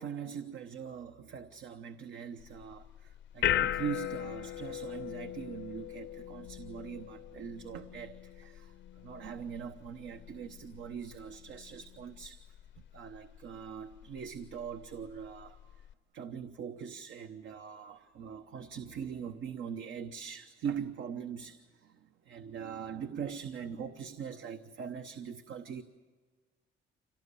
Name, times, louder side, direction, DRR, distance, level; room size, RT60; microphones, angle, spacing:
voice 1, 0.0-12.4 12.9-15.8 16.1-25.8, right 7 dB, 75° right, 7 dB, 1.0 m, -42 dB
sound 1, 2.4-15.9, left 11 dB, 70° left, 0.6 m, -39 dB
26.0 x 18.0 x 8.4 m, 1.5 s
cardioid pair, 90°, 20 cm